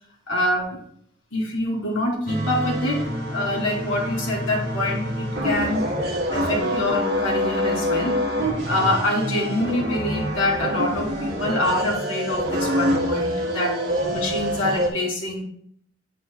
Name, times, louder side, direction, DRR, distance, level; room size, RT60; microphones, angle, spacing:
voice 1, 0.3-0.8 1.3-5.9 6.3-8.2 8.7-13.8 14.1-15.4, left 1 dB, 85° left, -2 dB, 2.9 m, -25 dB
sound 1, 2.3-14.9, equal, 50° right, 1.9 m, -26 dB
9.2 x 5.6 x 2.3 m, 0.65 s
head